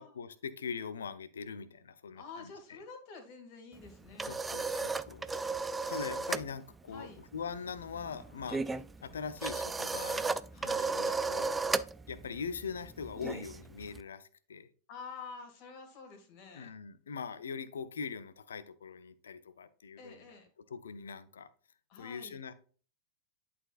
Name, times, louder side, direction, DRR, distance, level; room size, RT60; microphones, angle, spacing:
voice 1, 0.0-2.8 4.3-5.5 5.9-8.6 9.0-10.3 10.6-11.5 12.1-14.7 16.5-20.4 20.7-21.5 22.0-22.5, left 6 dB, 65° left, 15 dB, 0.5 m, -42 dB
voice 2, 2.1-4.4 6.9-7.2 10.5-11.0 14.9-16.7 20.0-20.5 21.9-22.4, left 4 dB, 40° left, 5 dB, 1.9 m, -49 dB
sound 1, 3.8-6.5 6.8-7.1 7.3-14.0, right 3 dB, 10° right, 0.3 m, -35 dB
11.0 x 4.2 x 2.4 m, 0.41 s
figure-of-eight pair, 90°, 0 cm